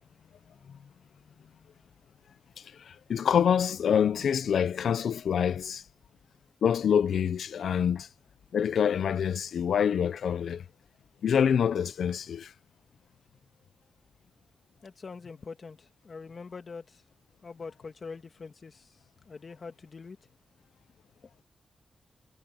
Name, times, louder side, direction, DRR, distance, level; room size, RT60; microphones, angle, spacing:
voice 1, 2.9-5.8 6.6-8.1 8.5-10.6 11.2-12.5, left 8 dB, 85° left, 0.7 m, -26 dB
voice 2, 14.8-17.0 17.4-20.2, left 4 dB, 55° left, 2.0 m, -44 dB
cardioid pair, 65°, 0 cm